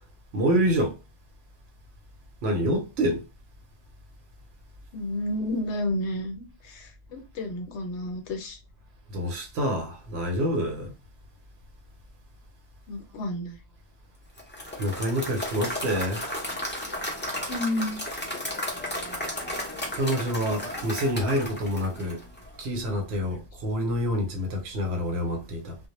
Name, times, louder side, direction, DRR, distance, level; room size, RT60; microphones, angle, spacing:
voice 1, 0.3-1.0 2.4-3.3 9.1-10.9 14.8-16.3 19.9-22.2 22.6-25.8, equal, 65° right, 0.9 m, -27 dB
voice 2, 4.9-8.6 12.9-13.6 17.5-18.0, left 1 dB, 70° left, 0.9 m, -31 dB
Applause / Crowd, 14.4-22.5, left 1 dB, 15° left, 0.5 m, -34 dB
2.1 x 2.1 x 2.9 m
omnidirectional pair, 1.2 m